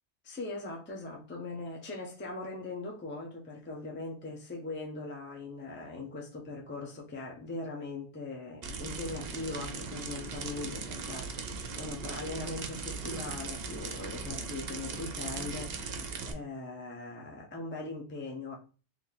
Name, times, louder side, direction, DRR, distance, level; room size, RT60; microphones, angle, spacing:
voice 1, 0.2-18.6, left 3 dB, 10° left, 0.6 m, -40 dB
sound 1, 8.6-16.3, right 4 dB, 65° right, 0.8 m, -39 dB
3.0 x 2.8 x 3.9 m
omnidirectional pair, 1.1 m